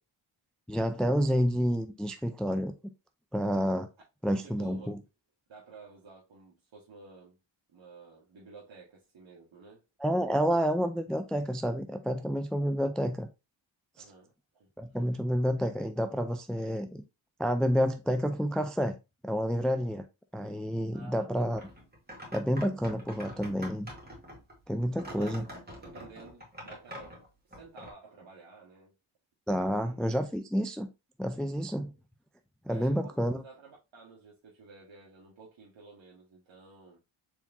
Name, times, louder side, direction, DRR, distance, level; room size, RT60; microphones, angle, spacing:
voice 1, 0.7-2.7 3.3-3.9 4.2-5.0 10.0-13.3 14.8-17.0 17.4-19.0 19.2-20.0 20.3-21.6 22.3-23.9 24.7-25.4 29.5-30.9 31.2-31.9 32.7-33.4, equal, ahead, 0.4 m, -29 dB
voice 2, 4.4-4.9 5.5-7.4 7.7-9.8 14.0-14.7 20.9-21.5 25.1-25.4 25.8-27.1 27.4-28.9 29.6-30.0 32.7-37.0, right 4 dB, 65° right, 1.4 m, -52 dB
sound 1, 21.5-27.9, equal, 20° right, 1.9 m, -46 dB
4.6 x 3.5 x 2.6 m
cardioid pair, 60°, 49 cm